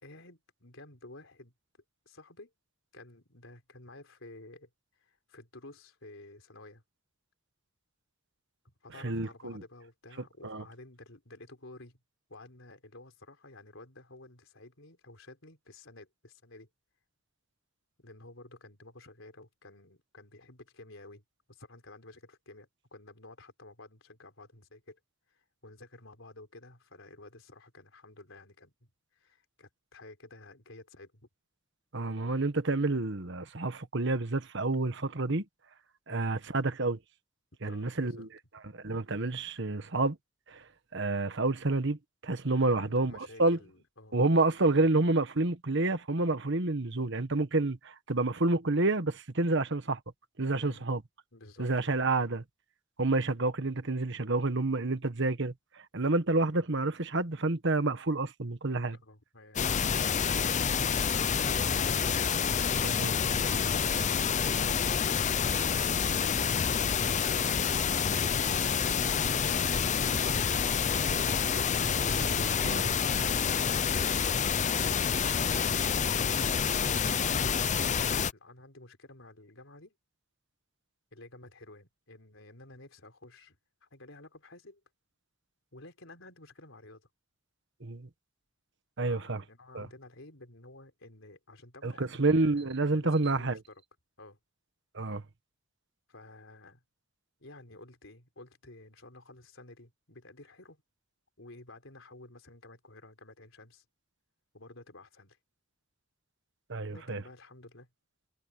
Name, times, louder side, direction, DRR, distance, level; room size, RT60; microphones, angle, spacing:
voice 1, 0.0-1.5 2.1-2.5 2.9-4.7 5.0-6.8 8.6-12.0 12.3-16.7 18.0-25.0 25.3-31.2 36.1-36.3 37.6-38.3 42.6-44.2 50.6-50.8 51.3-52.1 58.9-62.2 75.6-79.9 81.1-83.6 83.8-84.8 85.7-87.1 89.0-93.8 94.2-94.4 96.1-96.8 97.4-100.8 101.4-103.8 104.5-105.4 106.9-107.9, left 2 dB, 75° left, 4.3 m, -52 dB
voice 2, 9.0-9.6 10.4-10.6 31.9-35.4 36.1-37.0 37.6-38.3 38.7-40.2 40.5-40.6 40.9-42.0 42.2-43.6 44.1-50.0 50.4-51.0 51.6-52.4 53.0-55.5 55.9-59.0 62.8-63.1 72.0-72.9 87.8-88.1 89.0-89.4 89.7-89.9 91.8-93.6 94.9-95.2 106.7-107.2, right 2 dB, 65° right, 1.4 m, -29 dB
sound 1, 59.6-78.3, left 7 dB, 35° left, 0.6 m, -28 dB
head